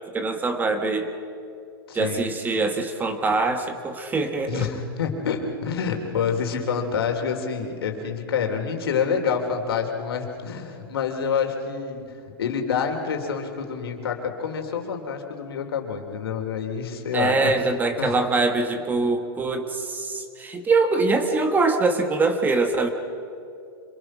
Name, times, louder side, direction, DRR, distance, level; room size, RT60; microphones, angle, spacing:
voice 1, 0.1-1.1 1.9-4.7 17.1-22.9, right 3 dB, 15° right, 7 dB, 1.5 m, -23 dB
voice 2, 1.9-2.3 4.5-12.0 12.4-17.6 18.0-18.2, left 6 dB, 80° left, 3 dB, 3.3 m, -27 dB
26.0 x 22.0 x 6.2 m, 2.5 s
hypercardioid pair, 140°, 12 cm